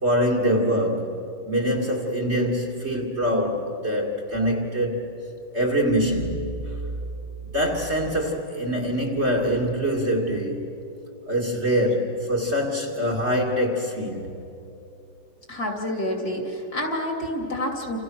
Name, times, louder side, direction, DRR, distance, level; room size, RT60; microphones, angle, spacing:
voice 1, 0.0-5.1 5.5-6.7 7.4-10.7 11.3-14.3, equal, 30° right, 2.4 m, -24 dB
voice 2, 15.5-18.0, left 1 dB, 45° left, 3.5 m, -28 dB
29.0 x 28.5 x 6.3 m
omnidirectional pair, 2.4 m